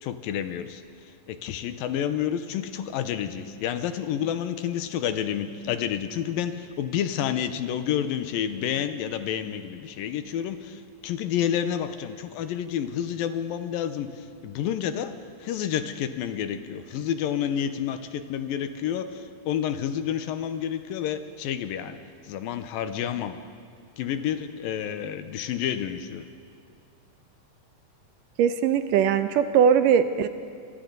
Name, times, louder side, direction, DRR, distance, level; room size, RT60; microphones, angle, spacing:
voice 1, 0.0-0.8 1.3-22.0 22.3-23.4 24.0-26.3, left 9 dB, 90° left, 10 dB, 2.7 m, -29 dB
voice 2, 28.4-30.3, right 8 dB, 75° right, 10 dB, 2.3 m, -20 dB
27.5 x 24.5 x 4.0 m, 2.3 s
omnidirectional pair, 4.0 m